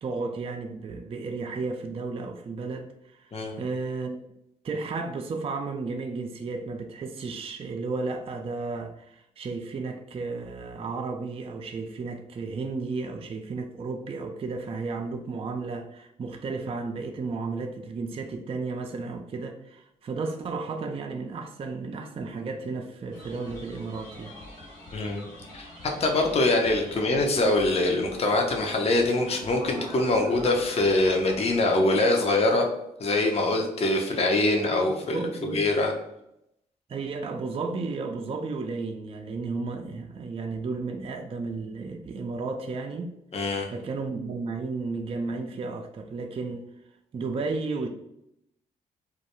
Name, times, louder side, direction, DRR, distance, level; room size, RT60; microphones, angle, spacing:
voice 1, 0.0-4.2 4.6-24.4 35.0-35.6 36.9-43.1 43.7-46.6 47.1-47.9, right 4 dB, 30° right, 0.4 m, -33 dB
sound 1, 23.1-31.6, left 1 dB, 75° left, 1.1 m, -45 dB
voice 2, 24.9-25.3 25.5-25.7 26.0-32.6 33.0-35.2 35.5-35.9 43.3-43.7, left 2 dB, 35° left, 0.5 m, -23 dB
2.2 x 2.2 x 2.9 m
hypercardioid pair, 40°, 18 cm